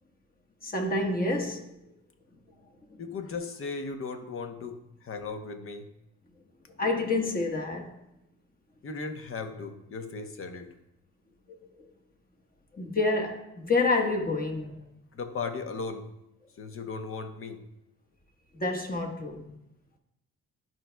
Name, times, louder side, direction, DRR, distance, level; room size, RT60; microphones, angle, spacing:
voice 1, 0.6-1.7 6.8-7.9 11.8-11.9 12.7-14.8 18.5-19.5, left 2 dB, 30° left, 1.3 m, -28 dB
voice 2, 3.0-4.8 5.0-5.9 8.8-10.7 15.1-16.1 16.6-17.6, left 4 dB, 45° left, 0.9 m, -36 dB
11.5 x 4.6 x 2.2 m
cardioid pair, 90°, 30 cm